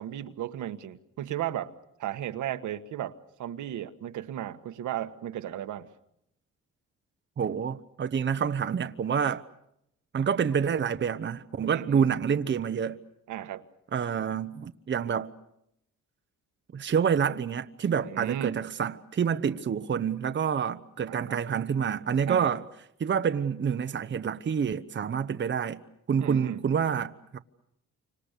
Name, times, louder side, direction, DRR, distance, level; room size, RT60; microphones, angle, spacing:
voice 1, 0.0-1.7 2.0-5.9 11.7-12.1 13.3-13.6 18.1-18.6 21.1-21.4 22.3-22.5 26.2-26.6, right 11 dB, 75° right, 1.5 m, -35 dB
voice 2, 7.4-9.4 10.1-13.0 13.9-15.3 16.7-22.6 23.0-25.8 26.1-27.4, right 7 dB, 40° right, 1.0 m, -28 dB
29.0 x 26.0 x 6.7 m
cardioid pair, 90°, 30 cm